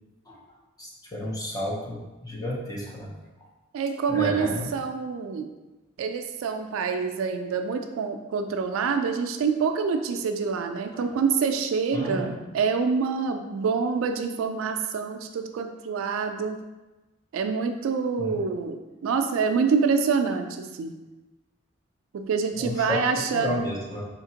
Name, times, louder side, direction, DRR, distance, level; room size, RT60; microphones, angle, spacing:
voice 1, 0.8-3.1 4.1-4.7 10.9-11.1 11.9-12.4 18.2-18.4 22.6-24.0, left 1 dB, 20° left, -4 dB, 0.6 m, -32 dB
voice 2, 3.7-5.5 6.0-16.6 17.3-20.9 22.1-23.6, right 5 dB, 85° right, 6 dB, 0.3 m, -26 dB
4.2 x 2.8 x 2.8 m, 1.1 s
head